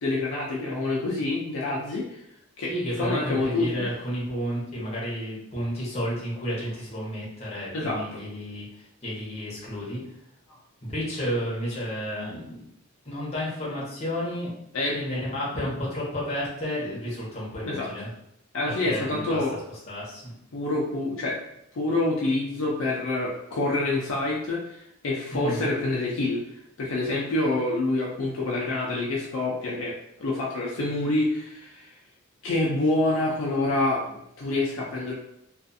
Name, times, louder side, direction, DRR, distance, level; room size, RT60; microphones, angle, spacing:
voice 1, 0.0-2.2 2.6-3.9 7.7-8.2 14.7-15.0 17.7-17.9 18.5-19.6 20.5-21.4 21.7-26.4 26.8-31.9 32.4-35.1, left 2 dB, 65° left, -4 dB, 0.5 m, -27 dB
voice 2, 2.7-10.0 10.8-12.7 13.0-14.5 14.9-18.1 18.7-19.4 19.9-20.3 25.3-25.7, equal, 30° left, -6 dB, 0.9 m, -31 dB
2.4 x 2.4 x 2.6 m, 0.77 s
head